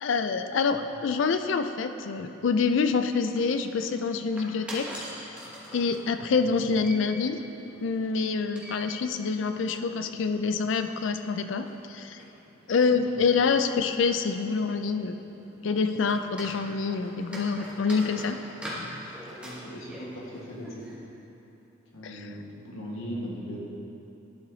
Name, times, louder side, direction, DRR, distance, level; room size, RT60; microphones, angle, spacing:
voice 1, 0.0-4.9 5.7-7.4 7.8-12.2 12.7-15.2 15.6-18.4, left 5 dB, 65° left, 9 dB, 0.4 m, -26 dB
sound 1, 3.0-20.9, equal, 5° right, 1.1 m, -45 dB
voice 2, 6.2-6.7 12.9-13.3 19.4-21.0 21.9-23.6, equal, 90° left, -5 dB, 1.6 m, -39 dB
11.5 x 4.8 x 3.9 m, 3.0 s
head